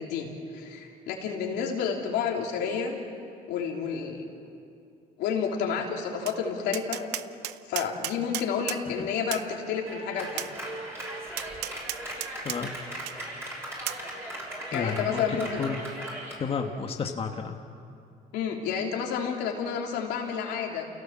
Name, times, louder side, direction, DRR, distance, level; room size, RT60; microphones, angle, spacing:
voice 1, 0.0-2.9 3.5-4.3 5.2-7.1 7.7-10.5 14.7-15.6 18.3-20.8, left 6 dB, 90° left, 0 dB, 3.3 m, -30 dB
Tap, 6.3-6.4 6.7-8.8 9.3-9.5 10.4-10.5 11.4-12.6 13.1-13.2 13.9-14.0, right 14 dB, 85° right, 0.7 m, -33 dB
Clapping, 9.9-16.4, right 1 dB, 15° right, 7.0 m, -38 dB
voice 2, 14.7-15.8 16.4-17.5, left 6 dB, 35° left, 3 dB, 1.5 m, -31 dB
29.0 x 17.0 x 7.5 m, 2.5 s
cardioid pair, 110°, 17 cm